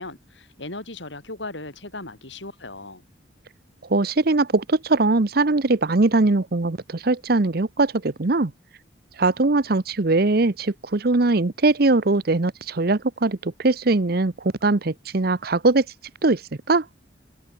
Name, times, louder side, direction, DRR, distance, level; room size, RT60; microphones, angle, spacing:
voice 1, 0.0-3.0, left 2 dB, 85° left, 7.8 m, -37 dB
voice 2, 3.9-8.5 9.2-14.3 14.6-15.8 16.2-16.4 16.7-16.8, right 3 dB, 55° right, 0.9 m, -21 dB
head